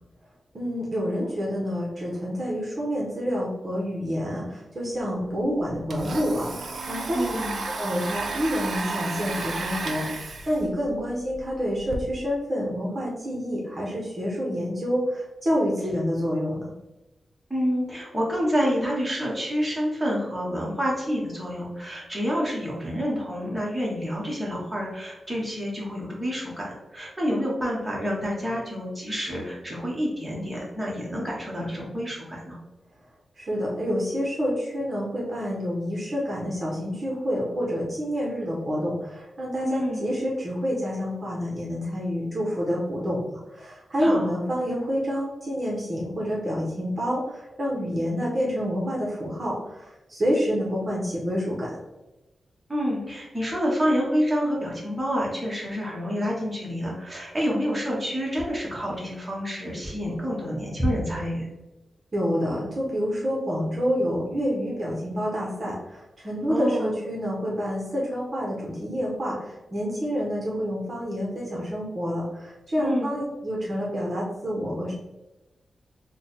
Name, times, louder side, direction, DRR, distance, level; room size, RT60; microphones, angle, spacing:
voice 1, 0.5-7.3 7.7-16.6 33.4-43.2 43.5-51.7 62.1-74.9, equal, 40° right, -4 dB, 0.8 m, -28 dB
Domestic sounds home sounds, 5.4-12.0, right 3 dB, 65° right, 0.5 m, -33 dB
voice 2, 7.1-7.7 17.5-32.6 39.6-40.1 44.0-44.3 52.7-61.5 66.5-67.0 72.8-73.1, equal, 10° right, -5 dB, 1.1 m, -28 dB
3.4 x 2.2 x 4.1 m, 1.0 s
wide cardioid pair, 135°, 0 cm